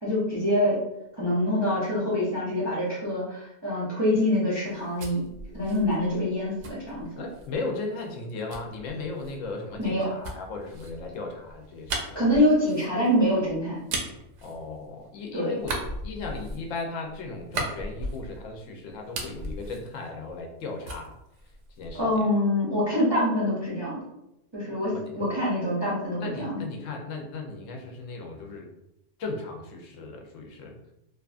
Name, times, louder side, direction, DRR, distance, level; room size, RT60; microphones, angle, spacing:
voice 1, 0.0-0.8 1.2-5.2 5.5-7.1 9.8-10.1 12.1-13.8 15.3-15.6 21.9-24.0 24.5-26.6, left 1 dB, 30° right, -7 dB, 0.4 m, -25 dB
sound 1, 4.6-7.6 8.5-15.2 15.6-18.6 18.9-20.6 20.8-22.2, right 2 dB, 70° right, 0.9 m, -37 dB
voice 2, 7.2-12.0 14.4-21.2 21.8-22.3 24.7-25.1 26.2-28.7 29.2-30.8, left 3 dB, 80° left, 2 dB, 0.9 m, -36 dB
2.9 x 2.2 x 2.4 m, 0.85 s
omnidirectional pair, 1.3 m